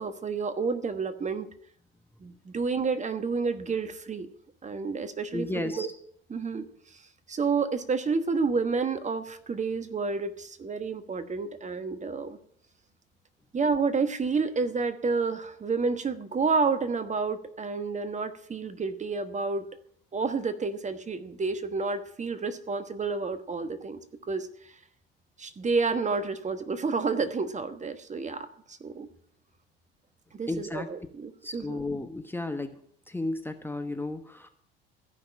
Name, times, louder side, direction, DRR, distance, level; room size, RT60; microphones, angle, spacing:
voice 1, 0.0-1.5 2.2-4.3 4.6-5.9 6.3-7.0 7.3-12.4 13.5-19.7 20.1-24.0 24.3-24.8 25.4-29.1 30.3-31.8, right 4 dB, 25° right, 10 dB, 1.2 m, -30 dB
voice 2, 5.3-5.9 30.5-30.9 31.4-32.8 33.1-34.5, left 2 dB, 5° left, 7 dB, 1.0 m, -33 dB
14.0 x 5.9 x 8.5 m, 0.64 s
figure-of-eight pair, 65°, 30 cm